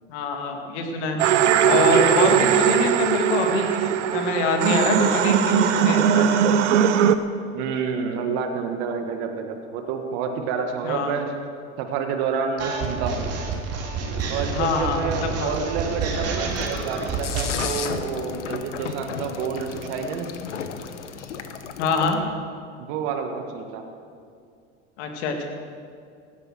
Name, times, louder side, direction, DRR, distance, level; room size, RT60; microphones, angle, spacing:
voice 1, 0.1-1.3 1.6-6.5 10.8-11.2 14.5-15.5 21.8-22.2 25.0-25.4, left 3 dB, 65° left, 4 dB, 2.3 m, -25 dB
sound 1, 1.2-7.2, right 9 dB, 80° right, 0.8 m, -19 dB
voice 2, 7.5-11.3 11.8-13.2 14.3-20.3 22.8-23.8, right 6 dB, 60° right, 5 dB, 1.7 m, -28 dB
sound 2, 12.6-17.7, right 4 dB, 45° right, 2.8 m, -29 dB
sound 3, 16.5-22.1, left 7 dB, 85° left, 1.1 m, -34 dB
16.5 x 9.7 x 6.4 m, 2.3 s
hypercardioid pair, 85°, 35 cm